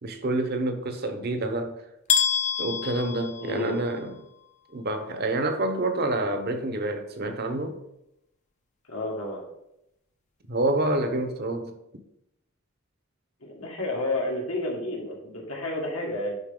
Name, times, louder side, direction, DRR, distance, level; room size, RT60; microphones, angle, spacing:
voice 1, 0.0-1.8 2.6-4.2 4.7-7.8 10.5-11.8, right 2 dB, 45° right, 0.9 m, -28 dB
sound 1, 2.1-4.1, left 7 dB, 35° left, 0.7 m, -27 dB
voice 2, 3.4-3.8 8.9-9.4 13.4-16.4, left 1 dB, 75° left, 2.0 m, -30 dB
11.0 x 4.1 x 3.8 m
head